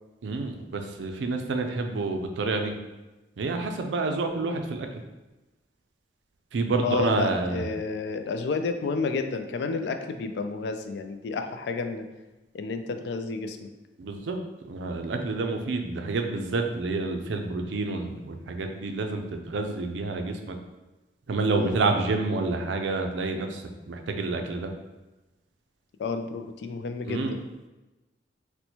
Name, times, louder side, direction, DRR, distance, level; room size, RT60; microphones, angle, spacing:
voice 1, 0.2-2.7 3.4-5.0 6.5-7.7 14.0-14.4 14.7-20.6 21.3-24.7 27.0-27.4, right 3 dB, 85° right, 4 dB, 0.4 m, -28 dB
voice 2, 6.8-12.1 12.5-13.7 21.6-21.8 26.0-27.4, left 4 dB, 65° left, 7 dB, 0.3 m, -31 dB
4.2 x 2.1 x 2.8 m, 1.1 s
head